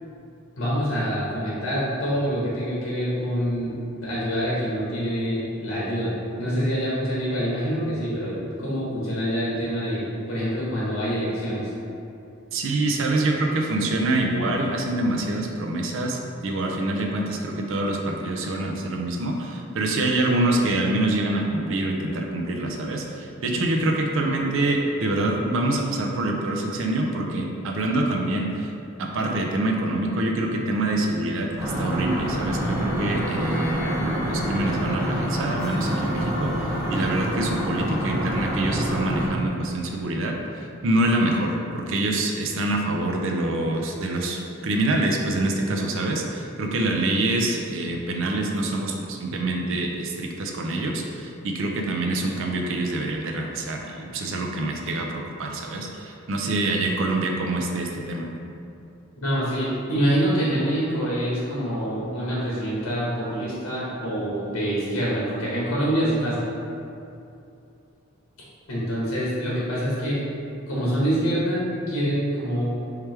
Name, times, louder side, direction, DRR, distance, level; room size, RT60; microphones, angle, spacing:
voice 1, 0.6-11.7 59.2-66.4 68.7-70.2 70.7-72.7, equal, 80° left, -7 dB, 1.1 m, -26 dB
voice 2, 12.5-28.7 29.0-58.3, right 2 dB, 60° right, 1 dB, 0.5 m, -25 dB
sound 1, 31.6-39.3, equal, 15° right, 1.0 m, -26 dB
4.6 x 3.3 x 3.3 m, 2.6 s
head